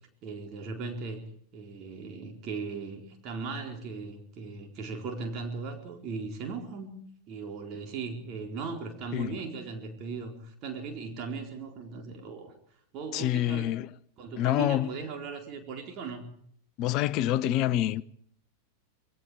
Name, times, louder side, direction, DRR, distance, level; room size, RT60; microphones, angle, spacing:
voice 1, 0.2-1.2 1.5-6.9 7.3-12.5 12.9-13.7 14.2-16.3, right 4 dB, 35° right, 4.3 m, -38 dB
voice 2, 9.1-9.5 13.1-13.9 14.4-15.0 16.8-18.0, left 13 dB, 40° left, 1.0 m, -27 dB
27.0 x 21.0 x 4.9 m
figure-of-eight pair, 90°, 0 cm